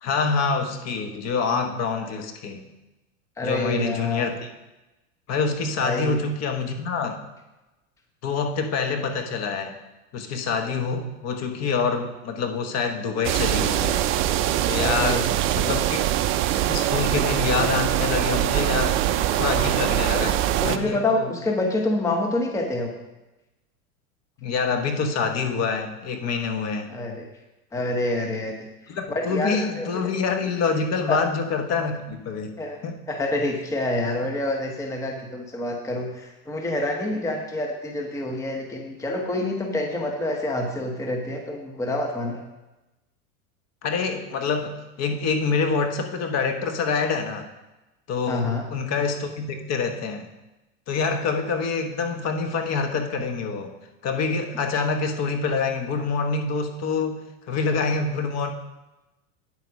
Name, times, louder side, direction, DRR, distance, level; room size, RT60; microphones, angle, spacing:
voice 1, 0.0-2.6 3.4-4.5 5.3-7.2 8.2-9.7 10.1-14.1 14.7-16.0 16.7-19.0 19.3-20.4 20.6-21.3 24.4-26.9 28.9-32.5 32.8-33.0 43.8-47.5 48.1-50.3 50.9-53.7 54.0-57.2 57.5-58.5, left 5 dB, 35° left, 6 dB, 1.2 m, -26 dB
voice 2, 3.4-4.3 5.8-6.2 14.8-15.3 20.1-20.3 20.6-22.9 26.9-27.3 27.7-29.9 31.1-31.2 32.6-32.8 33.1-42.4 48.3-48.6, left 1 dB, 5° left, 2 dB, 0.9 m, -27 dB
sound 1, 13.2-20.8, right 12 dB, 30° right, 0.4 m, -23 dB
9.1 x 8.1 x 5.3 m, 1.0 s
supercardioid pair, 130°, 43 cm